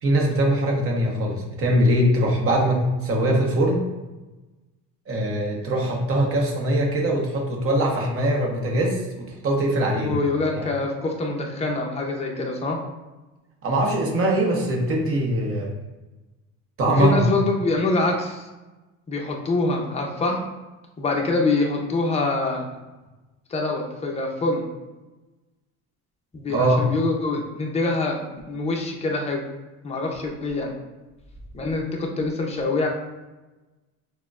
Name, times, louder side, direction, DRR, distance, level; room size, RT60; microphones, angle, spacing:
voice 1, 0.0-3.8 5.1-10.1 10.5-10.7 13.6-15.7 16.8-17.2 26.5-26.9, right 1 dB, 40° right, 0 dB, 0.9 m, -22 dB
voice 2, 10.0-12.8 17.0-18.5 19.1-20.4 21.0-22.7 23.5-24.6 26.3-29.4 29.8-30.7 31.5-32.9, left 3 dB, 20° left, 0 dB, 0.6 m, -25 dB
6.1 x 2.2 x 2.3 m, 1.1 s
cardioid pair, 135°, 35 cm